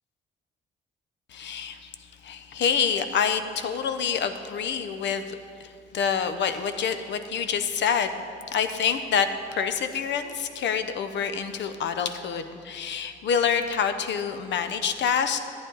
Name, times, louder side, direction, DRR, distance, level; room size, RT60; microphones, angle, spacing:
voice 1, 1.3-1.9 2.2-8.2 8.5-15.4, left 7 dB, 65° left, 9 dB, 0.7 m, -27 dB
11.5 x 8.6 x 3.9 m, 2.4 s
cardioid pair, 90°, 20 cm